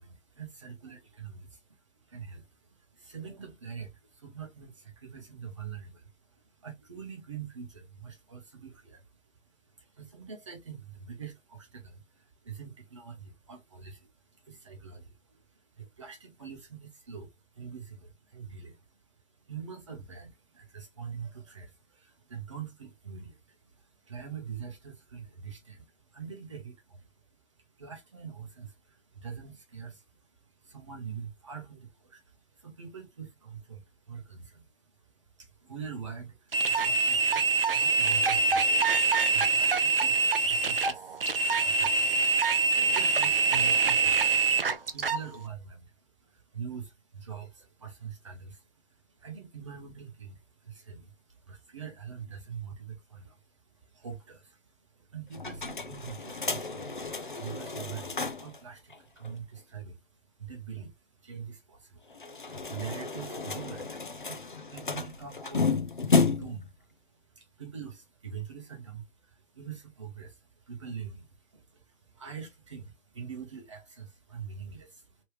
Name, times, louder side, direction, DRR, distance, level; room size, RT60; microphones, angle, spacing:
voice 1, 0.0-6.1 6.5-75.2, right 7 dB, 25° right, 0.8 m, -45 dB
sound 1, 36.5-45.2, right 4 dB, 45° right, 0.4 m, -25 dB
sound 2, 55.3-58.6 58.9-59.0 59.2-59.3 62.1-66.7, left 4 dB, 40° left, 0.4 m, -31 dB
3.2 x 3.0 x 3.0 m
hypercardioid pair, 170°, 39 cm